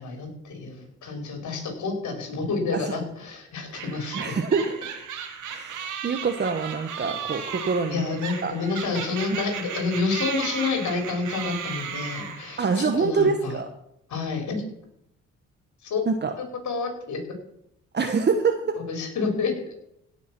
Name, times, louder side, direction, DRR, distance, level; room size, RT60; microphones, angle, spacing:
voice 1, 0.0-4.3 7.0-7.1 7.9-13.6 14.1-14.6 15.8-16.0 16.4-17.2 18.8-19.7, left 4 dB, 65° left, 3 dB, 4.5 m, -29 dB
sound 1, 3.7-12.8, right 7 dB, 80° right, 2.3 m, -35 dB
voice 2, 4.1-4.7 5.4-8.0 8.4-8.5 9.3-9.4 12.6-13.7 16.1-16.3 17.9-18.8, right 5 dB, 35° right, 5 dB, 1.2 m, -25 dB
17.0 x 6.0 x 6.1 m, 0.76 s
cardioid pair, 90°, 30 cm